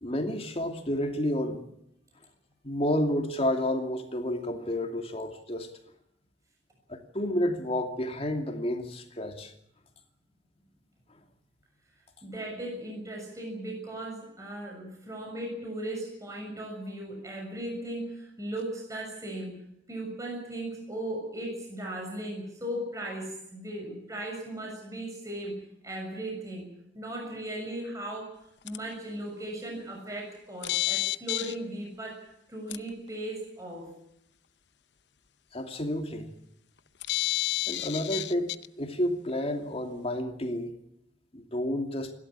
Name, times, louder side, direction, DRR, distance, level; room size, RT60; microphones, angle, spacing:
voice 1, 0.0-1.7 2.6-5.7 6.9-9.5 35.5-36.3 37.7-38.5 38.8-40.7 41.3-42.1, left 1 dB, 35° left, 2.7 m, -30 dB
voice 2, 12.2-19.6 19.9-26.7 26.9-28.3 28.6-33.9, right 1 dB, 20° right, 6.7 m, -37 dB
sound 1, 28.7-28.8 30.6-31.5 32.7-32.8 37.0-38.7, left 16 dB, 70° left, 0.8 m, -29 dB
29.0 x 12.5 x 10.0 m
head